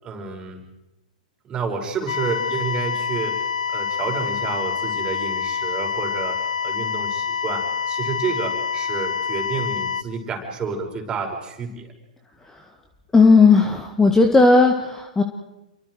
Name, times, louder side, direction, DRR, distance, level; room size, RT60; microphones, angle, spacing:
voice 1, 0.0-0.6 1.4-11.9, right 5 dB, 20° right, 1 dB, 5.9 m, -30 dB
sound 1, 2.1-10.0, left 7 dB, 70° left, 0.8 m, -26 dB
voice 2, 13.1-15.2, left 4 dB, 10° left, 5 dB, 1.9 m, -15 dB
29.5 x 24.0 x 4.8 m, 0.94 s
figure-of-eight pair, 115°, 4 cm